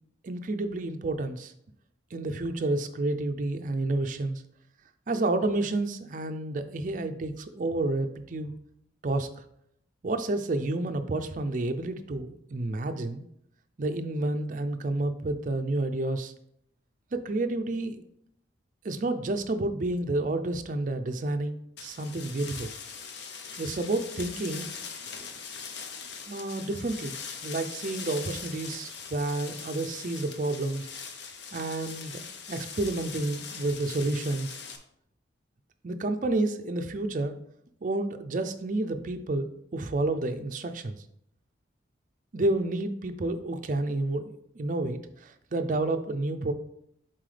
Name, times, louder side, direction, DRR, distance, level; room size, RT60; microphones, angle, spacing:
voice 1, 0.2-1.5 2.1-4.4 5.1-8.5 9.0-9.4 10.0-13.2 13.8-16.3 17.1-18.0 18.8-22.7 23.6-24.7 25.2-25.3 26.3-27.2 27.4-30.9 31.5-34.6 35.8-37.4 37.8-41.0 42.3-46.5, right 2 dB, 40° right, 8 dB, 0.4 m, -30 dB
sound 1, 21.8-34.8, left 6 dB, 60° left, 0.7 m, -41 dB
7.5 x 4.1 x 3.3 m, 0.74 s
head